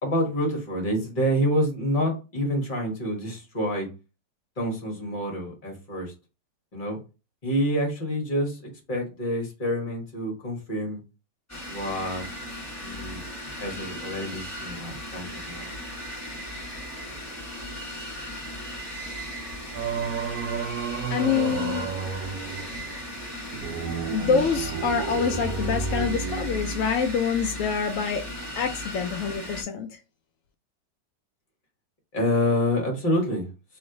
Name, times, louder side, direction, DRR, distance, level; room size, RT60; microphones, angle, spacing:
voice 1, 0.0-3.9 4.6-6.1 6.7-7.0 7.4-8.6 8.9-11.0 11.7-12.2 12.8-13.2 13.6-15.7 32.1-33.5, equal, 30° left, 1.2 m, -27 dB
sound 1, 11.5-29.6, equal, 10° left, 0.9 m, -36 dB
Singing, 19.7-27.1, right 6 dB, 70° right, 0.9 m, -32 dB
voice 2, 21.1-21.9 24.1-28.2 28.6-30.0, left 6 dB, 85° left, 0.6 m, -26 dB
3.2 x 3.0 x 3.7 m
omnidirectional pair, 1.9 m